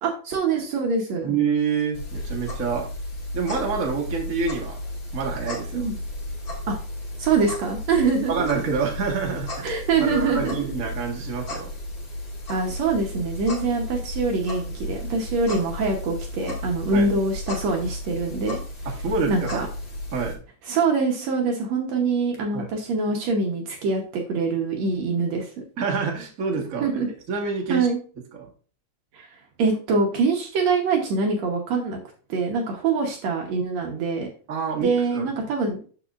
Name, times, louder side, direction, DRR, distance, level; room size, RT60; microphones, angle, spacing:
voice 1, 0.0-1.3 5.7-6.0 6.7-6.8 7.2-8.5 9.6-10.7 12.5-18.6 19.3-19.7 20.7-25.5 26.8-27.1 27.7-28.0 29.1-29.3 29.6-32.0 32.3-34.3 34.8-35.8, right 4 dB, 65° right, 1 dB, 2.0 m, -24 dB
voice 2, 1.2-2.9 3.3-4.8 5.1-5.8 8.3-9.7 10.0-11.7 16.9-17.1 19.0-19.6 20.1-20.4 22.5-22.7 25.8-26.9 27.3-27.9 28.4-28.5 34.5-35.3, right 5 dB, 35° right, 0 dB, 1.3 m, -27 dB
sound 1, 1.9-20.3, left 1 dB, 35° left, 1.8 m, -34 dB
12.5 x 4.9 x 2.5 m, 0.39 s
omnidirectional pair, 3.8 m